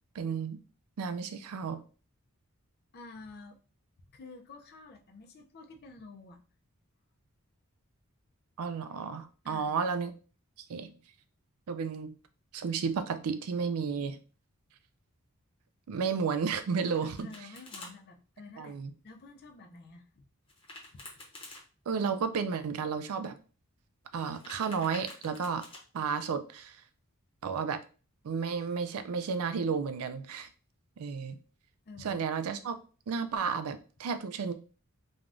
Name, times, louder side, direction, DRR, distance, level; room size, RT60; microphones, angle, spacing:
voice 1, 0.1-0.6 1.0-1.8 8.6-10.1 10.7-10.9 11.7-12.1 12.5-14.2 15.9-17.3 18.6-18.9 21.9-23.4 24.1-25.7 25.9-26.8 27.4-27.8 28.2-30.5 31.0-31.4 32.0-32.8 33.1-34.5, right 5 dB, 75° right, 0.4 m, -32 dB
voice 2, 2.9-3.6 4.1-6.4 9.4-9.8 17.0-18.8 19.0-20.3 31.9-32.2, left 3 dB, 45° left, 0.5 m, -50 dB
Domestic sounds home sounds, 16.5-17.9 20.5-21.6 24.2-25.8, left 2 dB, 25° left, 0.8 m, -48 dB
3.3 x 2.3 x 2.5 m
head